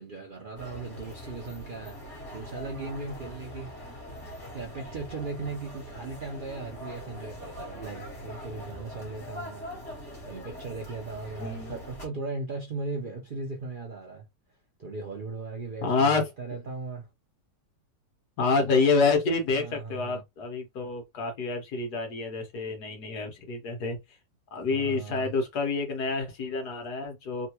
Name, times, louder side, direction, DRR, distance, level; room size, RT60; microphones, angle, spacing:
voice 1, 0.0-3.7 4.5-14.3 14.8-17.1 18.7-18.8 19.5-20.2 24.7-25.3, right 3 dB, 55° right, 0.5 m, -38 dB
sound 1, 0.6-12.1, equal, 45° left, 1.8 m, -42 dB
voice 2, 11.4-11.8 15.8-16.3 18.4-24.2 24.5-27.5, left 4 dB, 70° left, 1.6 m, -28 dB
3.6 x 2.3 x 2.9 m
omnidirectional pair, 1.8 m